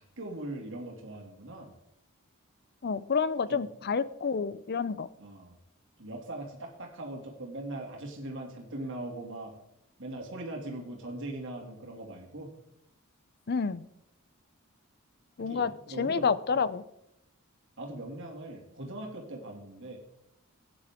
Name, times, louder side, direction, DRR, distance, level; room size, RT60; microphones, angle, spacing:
voice 1, 0.0-1.7 3.5-3.6 5.2-5.6 6.0-9.5 10.0-12.5 15.4-16.6 17.8-20.0, right 1 dB, 60° right, 1 dB, 2.7 m, -40 dB
voice 2, 2.8-5.1 13.5-13.8 15.4-16.8, left 5 dB, 45° left, 17 dB, 0.5 m, -29 dB
15.5 x 9.7 x 3.7 m, 0.81 s
head